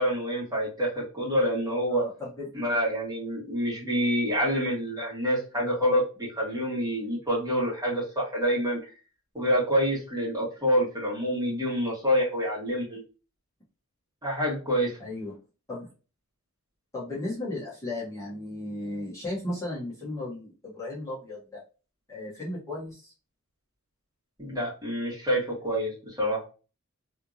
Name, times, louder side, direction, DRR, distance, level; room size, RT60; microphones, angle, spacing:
voice 1, 0.0-2.0 2.5-8.8 9.3-13.0 14.2-14.9 24.4-26.4, equal, 15° right, -6 dB, 1.8 m, -27 dB
voice 2, 1.9-2.5 15.0-15.3 15.7-15.9 16.9-21.6 22.1-23.1, left 2 dB, 15° left, -8 dB, 1.4 m, -35 dB
3.3 x 3.0 x 2.5 m, 0.34 s
head